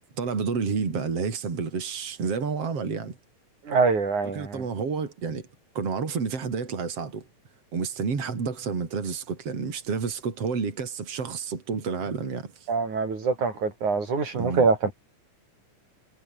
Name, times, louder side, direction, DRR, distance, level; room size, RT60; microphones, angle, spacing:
voice 1, 0.2-3.2 4.3-5.5 5.7-7.3 7.7-12.7 14.3-14.7, right 5 dB, 55° right, 4.9 m, -30 dB
voice 2, 3.7-4.6 12.7-14.8, right 4 dB, 90° right, 7.0 m, -24 dB
omnidirectional pair, 3.3 m